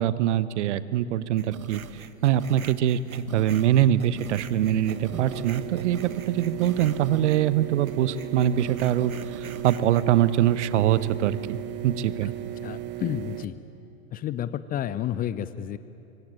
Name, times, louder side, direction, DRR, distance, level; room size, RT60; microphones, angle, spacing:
voice 1, 0.0-1.8 2.2-11.6 11.8-12.3, right 11 dB, 55° right, 16 dB, 1.1 m, -23 dB
sound 1, 1.4-7.5 7.9-10.0, right 6 dB, 85° right, 1.1 m, -42 dB
sound 2, 4.2-13.4, right 16 dB, 25° right, 1.0 m, -36 dB
voice 2, 12.6-13.6 14.1-15.8, left 11 dB, 20° left, 15 dB, 0.7 m, -31 dB
25.0 x 24.0 x 9.0 m, 2.7 s
figure-of-eight pair, 95°, 41 cm